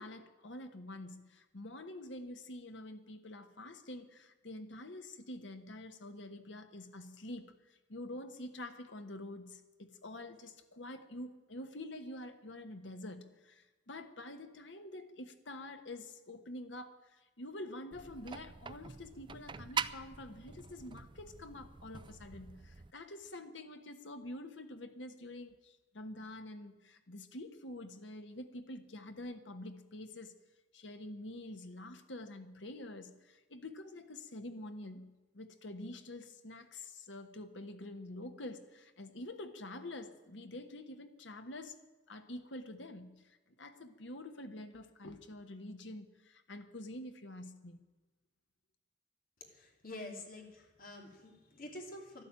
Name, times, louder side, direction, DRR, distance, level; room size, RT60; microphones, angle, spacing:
voice 1, 0.0-30.3 30.7-41.8 42.1-47.8, left 1 dB, 85° left, 8 dB, 1.4 m, -47 dB
sound 1, 17.9-22.9, right 6 dB, 25° right, 0.4 m, -43 dB
voice 2, 49.5-52.2, left 1 dB, 50° left, 2 dB, 2.8 m, -48 dB
12.5 x 11.5 x 9.0 m, 1.1 s
head